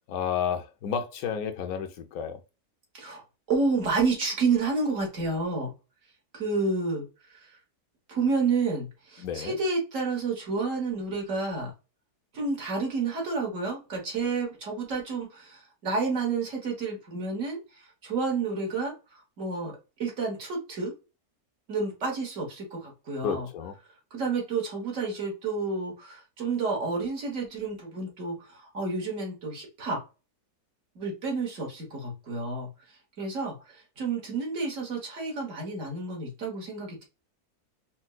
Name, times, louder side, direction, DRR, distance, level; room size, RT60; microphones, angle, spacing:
voice 1, 0.1-2.4 9.2-9.6 23.2-23.7, left 7 dB, 75° left, 1.0 m, -31 dB
voice 2, 3.5-5.7 6.3-7.6 8.1-11.7 12.3-19.7 20.0-20.9 21.7-23.5 24.1-30.0 30.9-37.0, right 4 dB, 55° right, 1.6 m, -30 dB
4.3 x 2.1 x 2.3 m
omnidirectional pair, 1.6 m